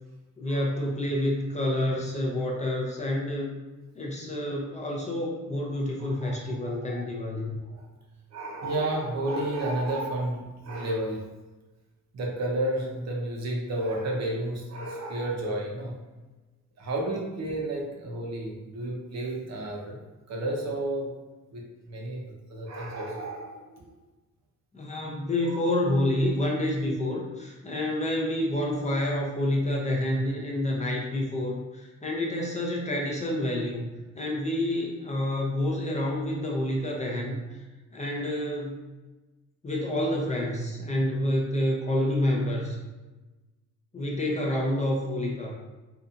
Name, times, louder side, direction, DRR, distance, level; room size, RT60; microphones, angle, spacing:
voice 1, 0.4-3.5 3.9-7.6 24.7-33.9 34.1-37.6 37.9-38.8 39.6-42.8 43.9-45.5, left 1 dB, 20° left, -2 dB, 0.5 m, -28 dB
voice 2, 6.0-7.0 7.7-7.9 8.3-11.2 12.1-16.0 16.8-19.9 20.3-21.1 21.5-23.9 25.5-25.6, right 1 dB, 55° right, -1 dB, 0.7 m, -32 dB
2.7 x 2.4 x 2.4 m, 1.2 s
cardioid pair, 100°, 31 cm